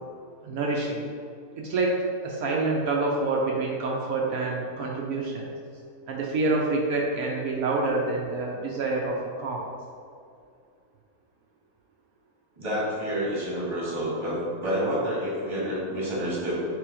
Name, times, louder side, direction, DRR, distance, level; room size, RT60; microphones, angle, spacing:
voice 1, 0.4-1.0 1.6-5.5 6.1-9.6, right 3 dB, 80° right, -2 dB, 1.0 m, -27 dB
voice 2, 12.6-16.5, equal, 20° right, -7 dB, 1.3 m, -28 dB
3.3 x 3.1 x 4.7 m, 2.3 s
omnidirectional pair, 1.6 m